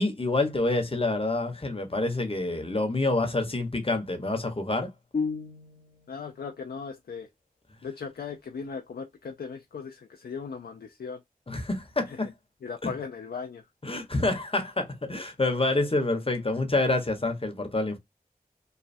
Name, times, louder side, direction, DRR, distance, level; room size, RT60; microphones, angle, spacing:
voice 1, 0.0-4.9 11.5-12.3 12.8-12.9 13.8-18.0, left 2 dB, 35° left, 1.0 m, -27 dB
sound 1, 5.1-6.2, left 5 dB, 55° left, 0.8 m, -32 dB
voice 2, 6.1-7.3 7.8-11.2 12.1-12.2 12.6-13.6, left 5 dB, 90° left, 0.4 m, -38 dB
3.2 x 2.2 x 2.5 m
wide cardioid pair, 50°, 16 cm